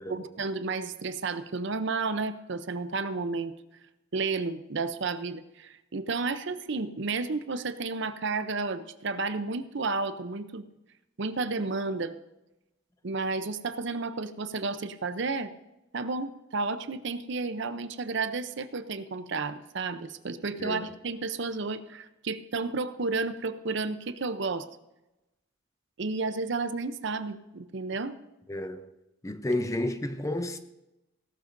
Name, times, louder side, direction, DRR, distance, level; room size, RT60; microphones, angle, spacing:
voice 1, 0.0-3.5 4.1-10.6 11.2-12.2 13.0-15.5 15.9-24.7 26.0-28.1, right 3 dB, 60° right, 0.6 m, -32 dB
voice 2, 20.6-20.9 28.5-28.8 29.2-30.6, left 1 dB, 15° left, 0.6 m, -31 dB
16.5 x 12.5 x 2.6 m
head